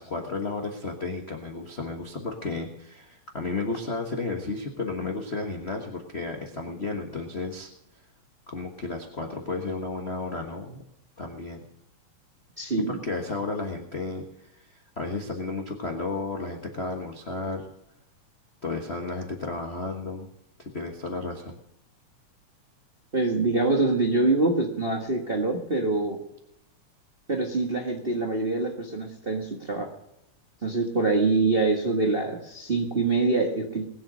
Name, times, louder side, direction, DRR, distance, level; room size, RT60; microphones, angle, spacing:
voice 1, 0.0-7.7 8.5-10.8 11.2-11.6 12.9-14.2 14.6-14.7 15.0-17.7 18.6-20.3 20.6-21.5, left 3 dB, 45° left, 2 dB, 0.8 m, -33 dB
voice 2, 12.6-13.0 23.1-26.2 27.3-29.9 30.6-33.8, right 3 dB, 30° right, 1 dB, 1.0 m, -25 dB
20.5 x 7.8 x 6.3 m, 0.82 s
omnidirectional pair, 3.3 m